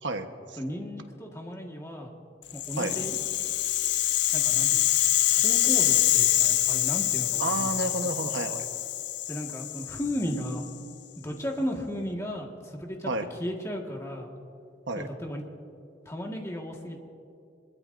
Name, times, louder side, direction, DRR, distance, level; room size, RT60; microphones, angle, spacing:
voice 1, 0.0-0.6 2.8-3.0 7.4-8.7 13.1-13.3 14.9-15.1, right 2 dB, 80° right, 6 dB, 1.2 m, -30 dB
voice 2, 0.6-2.1 2.5-3.2 4.3-4.8 5.2-7.7 8.0-8.1 9.3-10.6 11.2-13.1 13.4-14.3 14.9-15.4 16.0-17.0, equal, 15° left, 0 dB, 1.7 m, -35 dB
Rattle (instrument), 2.5-10.7, left 13 dB, 65° left, 0.4 m, -25 dB
25.0 x 21.5 x 2.6 m, 2.7 s
head